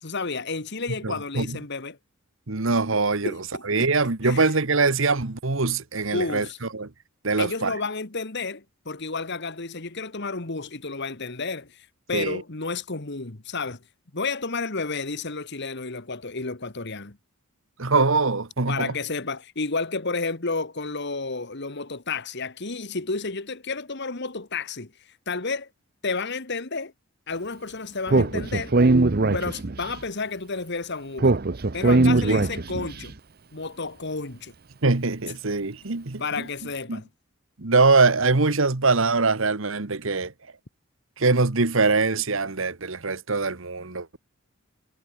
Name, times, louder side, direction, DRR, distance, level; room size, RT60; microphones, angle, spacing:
voice 1, 0.0-2.0 3.2-3.9 4.2-4.5 6.1-6.6 7.4-13.8 14.1-17.2 18.7-24.9 25.3-25.7 26.0-26.9 27.3-28.8 29.3-31.4 31.7-33.2 33.5-34.5 36.2-37.1, left 4 dB, 55° left, 1.7 m, -31 dB
voice 2, 1.0-1.6 2.5-3.3 3.6-6.5 6.7-6.9 7.2-7.8 12.1-12.4 17.8-18.9 32.3-32.4 34.8-36.4 36.9-37.0 37.6-40.3 41.2-44.2, right 3 dB, 65° right, 1.4 m, -23 dB
Speech, 28.1-29.9 31.2-32.9, right 2 dB, 45° right, 0.8 m, -20 dB
head